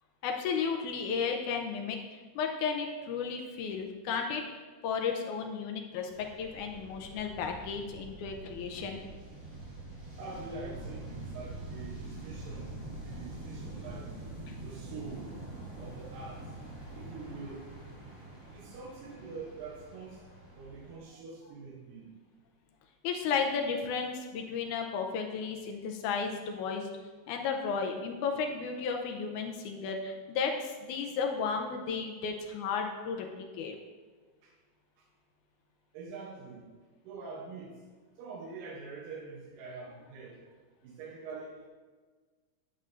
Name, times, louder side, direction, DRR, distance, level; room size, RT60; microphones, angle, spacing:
voice 1, 0.2-4.4 4.8-9.0 14.5-14.6 23.0-26.9 27.3-33.3 33.6-33.8, left 5 dB, 80° left, 3 dB, 2.0 m, -33 dB
sound 1, 6.1-21.0, right 2 dB, 25° right, 2.3 m, -45 dB
voice 2, 10.2-14.2 14.6-15.3 15.8-16.4 16.9-17.7 18.5-20.2 20.6-22.1 34.4-34.5 35.9-36.6 37.0-37.8 38.2-40.4 40.8-41.7, right 4 dB, 85° right, -3 dB, 2.6 m, -45 dB
9.4 x 7.6 x 2.6 m, 1.4 s
omnidirectional pair, 3.8 m